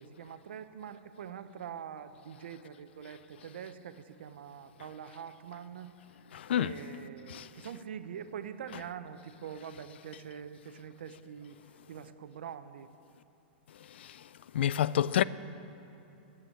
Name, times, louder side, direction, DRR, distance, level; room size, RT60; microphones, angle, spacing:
voice 1, 0.0-5.9 6.6-11.6 11.9-12.9, right 8 dB, 80° right, 0.7 m, -44 dB
voice 2, 6.3-6.7 7.3-7.5 14.5-15.2, left 10 dB, 80° left, 0.4 m, -27 dB
12.0 x 8.0 x 9.8 m
supercardioid pair, 165°, 6 cm